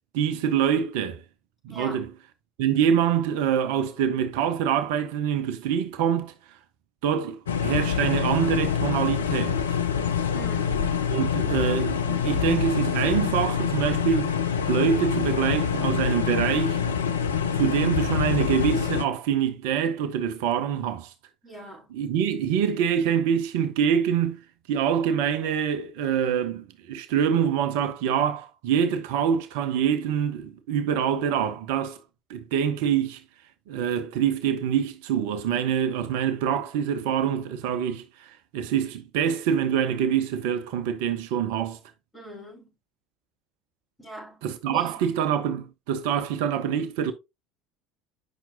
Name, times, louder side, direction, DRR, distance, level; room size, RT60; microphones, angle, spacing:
voice 1, 0.1-1.2 1.6-2.1 2.6-6.3 7.0-9.8 11.1-14.3 14.7-16.8 17.5-21.1 21.9-24.4 24.7-32.0 32.3-33.2 33.7-41.8 44.4-47.1, right 8 dB, 60° right, 0.6 m, -25 dB
voice 2, 1.7-2.0 10.3-10.9 21.4-21.9 42.1-42.7 44.0-45.0, right 1 dB, 15° left, 4.0 m, -41 dB
sound 1, 7.5-19.0, left 7 dB, 75° left, 0.5 m, -26 dB
7.9 x 5.8 x 2.6 m
figure-of-eight pair, 65°, 0 cm